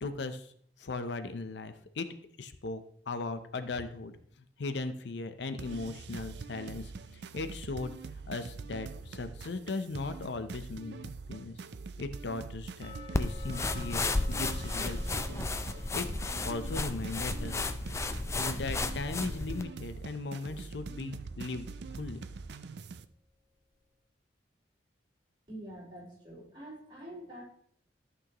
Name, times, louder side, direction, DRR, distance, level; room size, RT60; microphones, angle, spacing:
voice 1, 0.0-0.5 0.8-2.1 2.4-4.1 4.6-8.0 8.3-11.6 12.0-15.5 15.9-16.1 16.4-17.7 18.3-22.2, left 3 dB, 75° left, 10 dB, 0.6 m, -38 dB
sound 1, 5.6-23.0, right 4 dB, 65° right, 0.4 m, -44 dB
sound 2, 12.8-19.7 19.9-20.0 20.6-20.7 21.2-21.3, left 6 dB, 35° left, 2.1 m, -54 dB
sound 3, 13.1-19.6, left 2 dB, 15° left, 0.4 m, -33 dB
voice 2, 25.5-27.4, right 1 dB, 25° right, -6 dB, 4.4 m, -46 dB
13.5 x 6.2 x 3.0 m, 0.63 s
head